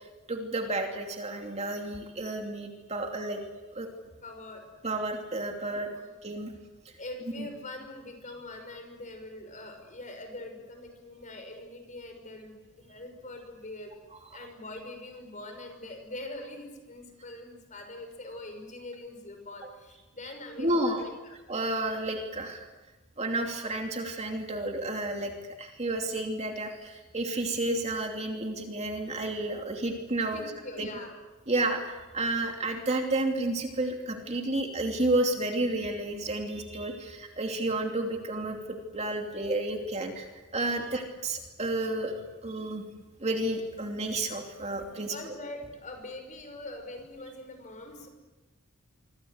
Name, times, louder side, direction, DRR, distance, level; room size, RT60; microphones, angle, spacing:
voice 1, 0.3-3.4 3.7-3.9 4.8-5.9 6.2-6.5 7.4-7.5 20.6-21.0 21.5-22.6 23.2-25.3 25.6-30.4 30.8-30.9 31.5-40.3 40.5-42.1 42.4-42.8 43.2-45.1, right 2 dB, 30° right, 3 dB, 2.8 m, -31 dB
voice 2, 4.2-4.6 5.8-6.1 7.0-13.9 14.3-21.4 30.3-31.1 44.9-48.1, left 2 dB, 35° left, 6 dB, 6.1 m, -43 dB
26.5 x 24.5 x 8.1 m, 1.2 s
head